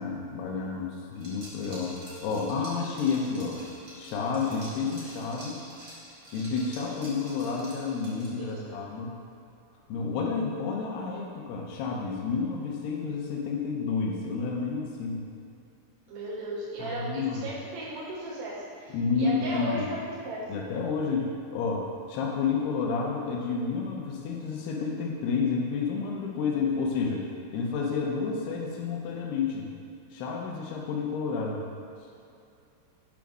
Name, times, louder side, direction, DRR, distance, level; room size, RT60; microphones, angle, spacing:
voice 1, 0.0-2.0 2.2-3.6 3.9-5.6 6.3-9.1 9.9-15.3 16.8-17.4 18.9-19.9 20.5-27.3 27.5-29.7 30.1-31.7, left 5 dB, 85° left, -2 dB, 2.3 m, -30 dB
Liquid, 1.1-8.5, right 1 dB, 90° right, 0.9 m, -47 dB
voice 2, 8.4-8.8 16.1-20.0 20.3-20.4, right 1 dB, 65° right, -11 dB, 3.9 m, -36 dB
9.0 x 3.6 x 6.1 m, 2.6 s
omnidirectional pair, 5.7 m